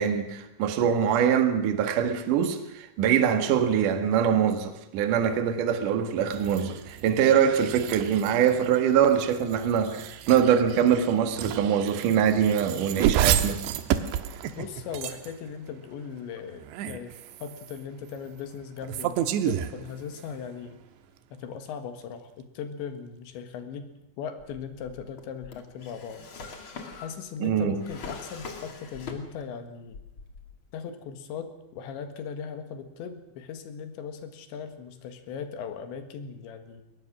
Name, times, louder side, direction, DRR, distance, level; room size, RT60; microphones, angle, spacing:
voice 1, 0.0-13.6 27.4-27.8, right 8 dB, 55° right, 2.8 m, -23 dB
sound 1, 6.3-15.5 16.5-17.8 18.8-20.4, right 11 dB, 80° right, 3.2 m, -31 dB
voice 2, 14.6-20.8 21.3-23.9 24.2-26.2 27.0-30.0 30.7-36.8, left 7 dB, 85° left, 4.0 m, -38 dB
Drawer open or close, 24.4-29.6 29.9-30.7, left 4 dB, 35° left, 2.4 m, -43 dB
22.0 x 19.5 x 6.2 m
omnidirectional pair, 5.1 m